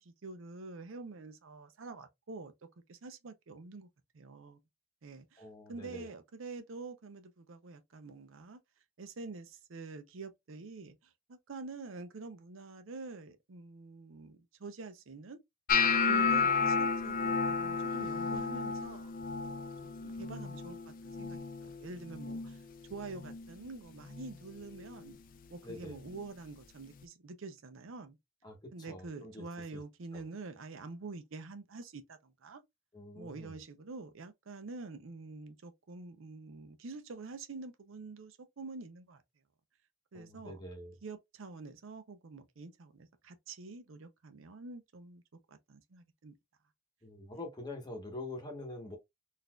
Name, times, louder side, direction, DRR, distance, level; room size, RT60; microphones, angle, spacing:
voice 1, 0.0-2.5 2.9-3.9 4.1-4.6 5.0-8.6 9.0-15.4 16.1-19.7 20.0-22.6 22.9-25.2 25.5-28.2 28.7-32.6 33.1-39.2 40.1-40.6 41.0-45.2 45.5-46.3, right 3 dB, 70° right, 0.6 m, -47 dB
voice 2, 5.4-6.1 25.6-26.0 28.4-29.4 29.7-29.8 32.9-33.5 40.1-40.9 47.0-49.0, left 2 dB, 20° left, 1.0 m, -45 dB
sound 1, 15.7-21.8 22.1-22.6 22.9-23.5 24.1-24.3 26.1-26.2, left 5 dB, 45° left, 0.4 m, -32 dB
3.9 x 2.6 x 2.3 m
head